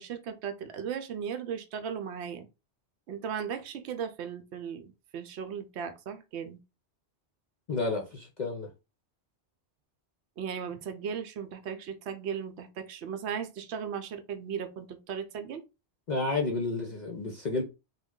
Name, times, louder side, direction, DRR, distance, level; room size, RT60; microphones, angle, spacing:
voice 1, 0.0-2.5 3.1-6.6 10.4-15.6, right 7 dB, 70° right, 0.8 m, -37 dB
voice 2, 7.7-8.7 16.1-17.6, left 3 dB, 50° left, 0.6 m, -31 dB
3.1 x 2.2 x 3.6 m
omnidirectional pair, 1.2 m